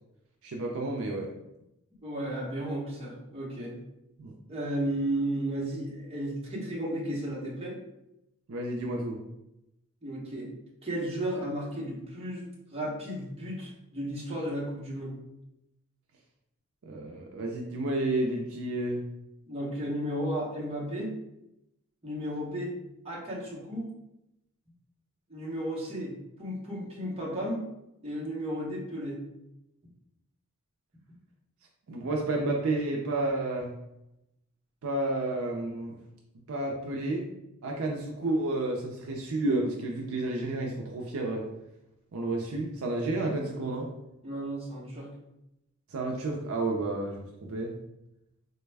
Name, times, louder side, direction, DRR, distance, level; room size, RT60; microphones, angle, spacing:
voice 1, 0.4-1.3 4.2-4.3 8.5-9.2 16.8-19.0 31.9-33.7 34.8-35.9 36.5-37.2 37.6-41.4 42.1-43.9 45.9-47.7, right 2 dB, 65° right, 0 dB, 0.5 m, -31 dB
voice 2, 2.0-3.7 4.5-7.8 10.0-10.5 10.8-15.2 19.5-21.1 22.0-22.7 23.0-23.9 25.3-27.6 28.0-29.2 44.2-45.1, right 1 dB, 25° right, -3 dB, 0.8 m, -34 dB
4.0 x 2.1 x 3.3 m, 0.87 s
head